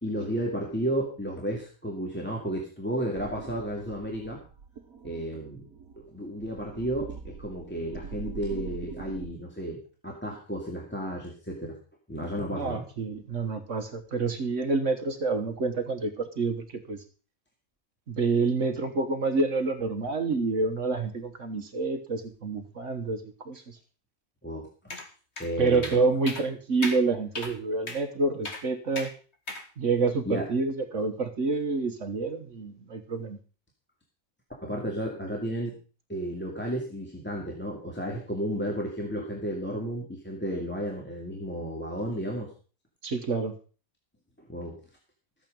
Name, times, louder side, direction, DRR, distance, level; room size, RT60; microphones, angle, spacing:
voice 1, 0.0-4.4 5.0-5.6 5.9-11.8 12.1-12.8 24.4-24.7 25.4-26.0 30.3-30.5 34.6-35.8 36.1-42.5 44.4-44.8, equal, 5° left, -1 dB, 2.3 m, -33 dB
sound 1, 3.1-9.3, right 5 dB, 80° right, 1.5 m, -43 dB
voice 2, 12.5-17.0 18.1-23.8 25.6-29.1 29.8-33.4 43.0-43.6, right 3 dB, 60° right, 7 dB, 1.6 m, -28 dB
sound 2, 24.9-25.1 25.4-25.5 25.8-26.0 26.3-26.5 26.8-27.0 27.4-27.5 27.9-28.0 28.5-28.6 29.0-29.1 29.5-29.6, left 2 dB, 50° left, 2.1 m, -35 dB
13.0 x 9.0 x 5.3 m, 0.37 s
omnidirectional pair, 1.5 m